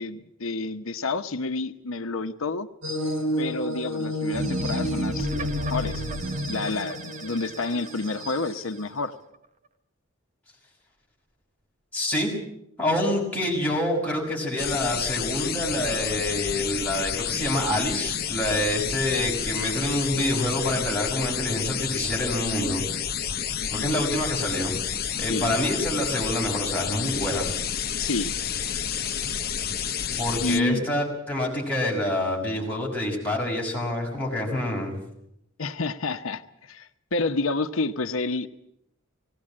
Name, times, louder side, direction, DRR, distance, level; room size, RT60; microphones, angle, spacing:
voice 1, 0.0-2.7 3.4-6.0 6.5-9.2 23.6-24.1 25.3-25.6 28.0-28.3 30.4-30.8 35.6-38.5, left 3 dB, 85° left, 8 dB, 1.0 m, -29 dB
sound 1, 2.8-8.8, equal, 75° right, 6.3 m, -32 dB
sound 2, 4.3-8.7, equal, 35° right, 1.3 m, -31 dB
voice 2, 11.9-12.3 12.8-22.9 23.7-24.7 25.2-27.5 30.2-35.0, left 1 dB, 10° left, -3 dB, 6.1 m, -27 dB
sound 3, 14.6-30.6, left 8 dB, 50° left, 0.9 m, -30 dB
19.0 x 17.5 x 8.7 m, 0.77 s
head